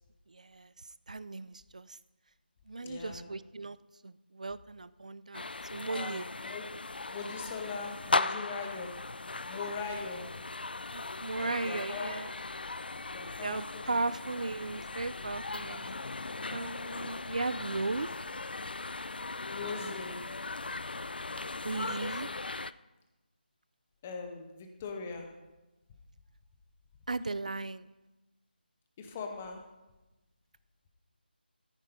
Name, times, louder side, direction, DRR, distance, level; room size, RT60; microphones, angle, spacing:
voice 1, 0.3-2.0 2.7-3.8 4.0-6.3 10.9-12.3 13.4-15.9 16.5-18.1 21.6-22.3 27.1-27.9, right 3 dB, 45° right, 17 dB, 0.5 m, -36 dB
voice 2, 2.8-3.3 5.9-6.6 7.1-8.9 9.5-10.2 11.4-12.1 13.1-14.0 15.7-15.9 19.5-20.2 24.0-25.3 29.0-29.6, left 4 dB, 10° left, 4 dB, 0.5 m, -40 dB
sound 1, 5.3-22.7, left 3 dB, 65° left, 0.5 m, -38 dB
13.5 x 9.9 x 5.1 m, 1.1 s
figure-of-eight pair, 180°, 6 cm